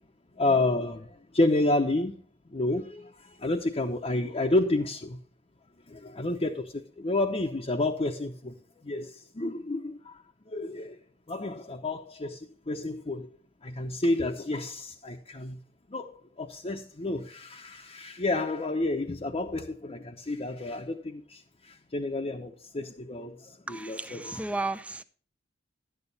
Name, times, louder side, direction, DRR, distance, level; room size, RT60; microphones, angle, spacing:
voice 1, 0.4-2.2 2.5-5.2 5.9-8.6 8.8-10.2 10.5-11.0 11.3-13.3 13.6-15.6 15.9-24.4, left 2 dB, 30° left, 0.8 m, -30 dB
voice 2, 23.7-25.0, right 2 dB, 5° right, 0.6 m, -34 dB
11.5 x 9.0 x 4.1 m
head